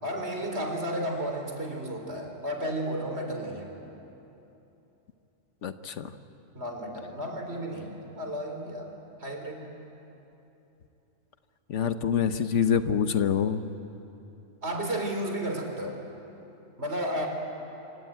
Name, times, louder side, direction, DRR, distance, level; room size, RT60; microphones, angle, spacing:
voice 1, 0.0-3.8 6.5-8.9 9.2-9.7 14.6-16.0 16.8-17.3, right 1 dB, 55° right, 3 dB, 3.9 m, -33 dB
voice 2, 5.6-6.1 11.7-13.6, left 7 dB, 70° left, 10 dB, 1.2 m, -26 dB
26.0 x 24.5 x 9.1 m, 3.0 s
omnidirectional pair, 1.3 m